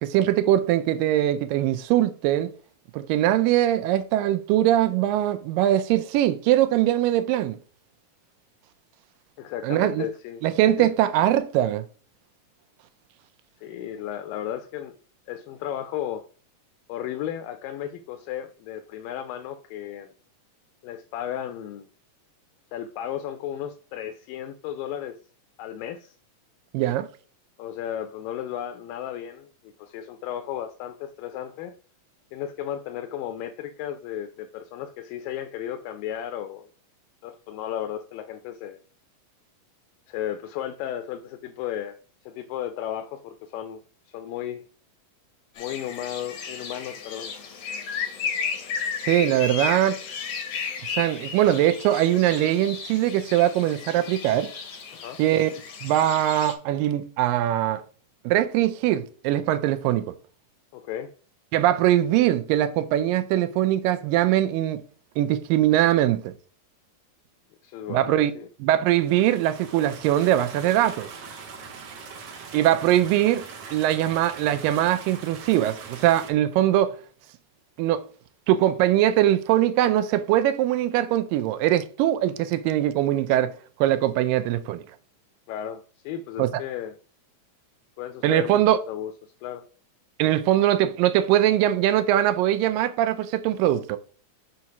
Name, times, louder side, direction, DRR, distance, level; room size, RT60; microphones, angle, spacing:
voice 1, 0.0-2.5 2.9-7.6 9.6-10.1 10.4-11.8 26.7-27.1 49.0-50.0 51.0-54.5 55.2-55.6 55.8-57.8 58.3-60.1 61.5-64.8 65.2-66.3 67.9-68.3 68.6-71.1 72.5-73.4 73.7-77.0 77.8-78.0 78.5-83.5 83.8-84.8 86.4-86.5 88.2-88.8 90.2-94.0, right 12 dB, 85° right, 2.3 m, -21 dB
voice 2, 9.4-10.4 10.8-10.9 13.6-15.0 15.3-16.2 16.9-20.1 20.8-21.9 22.7-25.2 25.6-26.1 27.6-31.7 32.3-36.7 37.2-38.8 40.1-42.0 42.2-44.6 45.6-47.3 54.9-55.2 60.7-61.1 67.6-68.5 85.5-86.9 88.0-89.6, left 10 dB, 85° left, 2.3 m, -34 dB
sound 1, 45.6-56.5, left 6 dB, 70° left, 1.4 m, -34 dB
sound 2, 69.0-76.3, right 5 dB, 65° right, 1.6 m, -42 dB
6.4 x 2.9 x 5.8 m
omnidirectional pair, 3.9 m